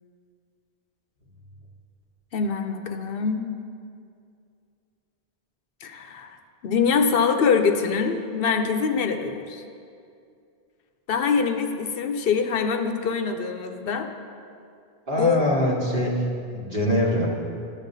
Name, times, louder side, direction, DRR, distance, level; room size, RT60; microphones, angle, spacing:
voice 1, 2.3-3.5 5.8-6.3 6.6-9.6 11.1-14.1 15.2-15.4 16.0-16.1, left 6 dB, 70° left, 7 dB, 0.7 m, -24 dB
voice 2, 15.1-17.3, equal, 60° right, -4 dB, 1.4 m, -24 dB
13.0 x 7.2 x 2.6 m, 2.4 s
omnidirectional pair, 1.0 m